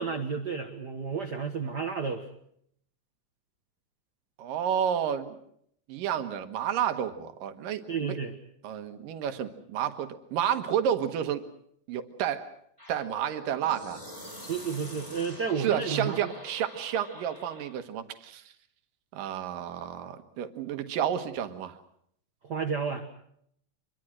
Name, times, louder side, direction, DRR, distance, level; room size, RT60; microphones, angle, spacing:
voice 1, 0.0-2.2 7.9-8.3 14.5-16.3 22.4-23.0, right 5 dB, 45° right, 6 dB, 1.4 m, -31 dB
voice 2, 4.4-5.4 5.9-8.2 8.6-11.4 11.9-12.5 12.9-14.0 15.6-18.4 19.1-21.8, right 9 dB, 85° right, 9 dB, 3.0 m, -30 dB
sound 1, 12.8-17.8, equal, 10° left, 7.6 m, -45 dB
26.0 x 23.0 x 6.4 m, 0.68 s
omnidirectional pair, 3.8 m